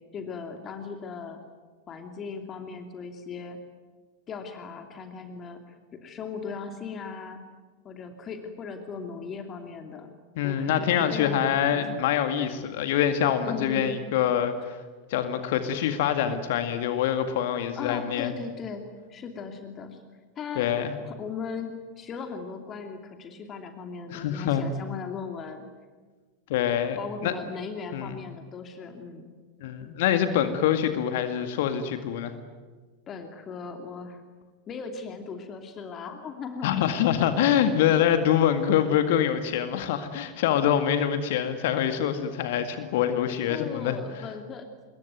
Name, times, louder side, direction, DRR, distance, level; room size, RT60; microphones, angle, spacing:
voice 1, 0.1-1.4 1.9-3.6 4.3-7.4 7.8-10.1 10.4-11.4 11.7-11.9 13.4-14.0 17.5-20.0 20.4-21.7 22.0-25.7 27.0-29.3 33.1-34.2 34.7-36.8 37.9-38.2 40.6-40.7 43.5-44.7, left 5 dB, 25° left, 5 dB, 2.7 m, -38 dB
voice 2, 10.4-14.8 15.1-18.4 20.6-20.9 24.1-24.7 26.5-27.0 27.2-27.3 27.9-28.2 29.6-32.3 36.6-44.0, left 9 dB, 50° left, 9 dB, 2.0 m, -25 dB
26.0 x 22.0 x 9.4 m, 1.4 s
figure-of-eight pair, 90°, 0 cm